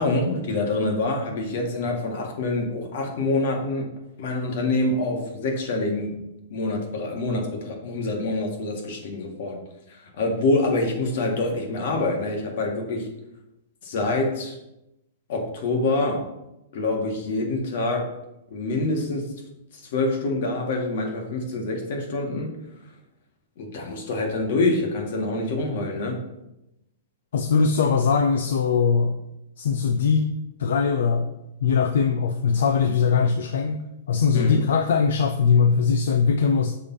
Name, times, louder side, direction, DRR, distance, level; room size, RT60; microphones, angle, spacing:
voice 1, 0.0-3.9 4.2-6.1 6.5-9.6 9.9-13.1 13.8-14.6 15.3-16.2 16.7-18.0 18.5-19.3 19.9-22.5 23.6-26.2 34.3-34.6, left 2 dB, 50° left, 1 dB, 1.7 m, -26 dB
voice 2, 27.3-29.2 29.6-30.3 30.6-31.3 31.6-33.8 34.1-36.7, left 5 dB, 70° left, 7 dB, 0.5 m, -21 dB
6.7 x 3.4 x 5.6 m, 0.88 s
hypercardioid pair, 165°, 0 cm